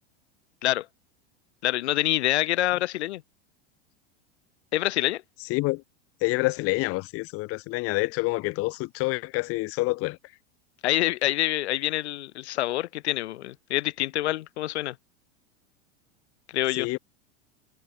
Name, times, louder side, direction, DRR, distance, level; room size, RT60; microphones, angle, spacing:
voice 1, 1.6-3.2 4.7-5.2 10.8-15.0 16.5-16.9, left 15 dB, 75° left, 2.7 m, -26 dB
voice 2, 5.5-5.8 6.2-10.2 16.8-17.0, left 23 dB, 45° left, 0.9 m, -27 dB
hypercardioid pair, 115°, 33 cm